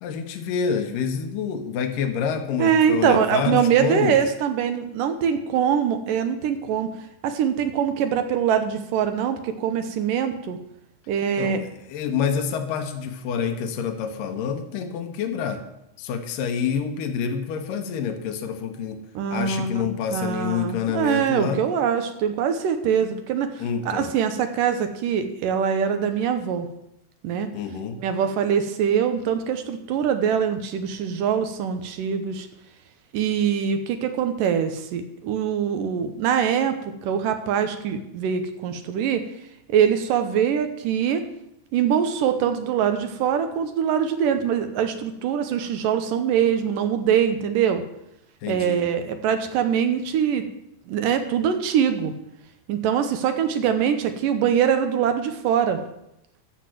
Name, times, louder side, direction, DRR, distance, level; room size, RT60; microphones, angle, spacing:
voice 1, 0.0-4.2 11.4-15.6 16.0-19.0 19.3-21.6 23.6-24.1 27.5-28.0 48.4-48.8, left 7 dB, 75° left, 6 dB, 2.6 m, -27 dB
voice 2, 2.6-6.9 7.2-10.6 11.1-11.6 19.2-26.7 27.2-27.5 28.0-32.5 33.1-39.2 39.7-41.2 41.7-47.8 48.5-50.5 50.9-52.1 52.7-55.8, right 8 dB, 75° right, 8 dB, 2.4 m, -23 dB
10.0 x 7.4 x 7.7 m, 0.82 s
omnidirectional pair, 4.0 m